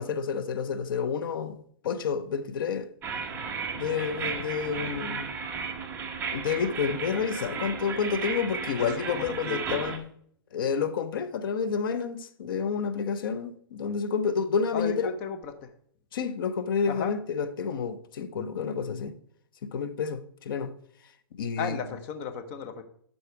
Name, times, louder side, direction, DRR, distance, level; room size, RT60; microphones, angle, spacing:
voice 1, 0.0-2.9 3.7-5.3 6.3-10.1 10.5-15.1 16.1-19.1 19.6-20.7 21.3-21.8, left 6 dB, 60° left, 0.8 m, -29 dB
sound 1, 3.0-10.0, right 5 dB, 15° right, 0.9 m, -34 dB
voice 2, 8.7-9.8 14.7-15.7 16.8-17.1 21.6-22.8, left 6 dB, 35° left, 1.1 m, -35 dB
11.5 x 4.2 x 4.7 m
hypercardioid pair, 155°, 13 cm